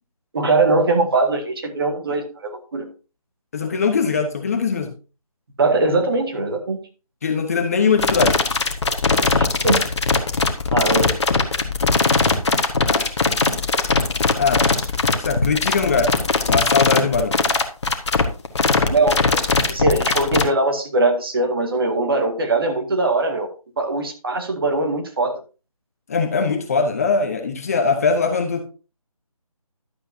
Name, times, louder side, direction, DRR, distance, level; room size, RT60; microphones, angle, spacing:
voice 1, 0.3-2.9 5.6-6.8 9.4-9.8 10.7-11.4 18.9-23.5 23.8-25.4, right 2 dB, 40° right, 4 dB, 1.9 m, -21 dB
voice 2, 3.5-4.9 7.2-8.4 12.9-13.1 14.3-14.7 15.2-16.1 16.5-17.4 26.1-28.6, left 5 dB, 25° left, 5 dB, 1.0 m, -21 dB
sound 1, 8.0-20.4, left 4 dB, 50° left, 1.4 m, -19 dB
12.0 x 8.2 x 2.8 m, 0.34 s
figure-of-eight pair, 160°, 19 cm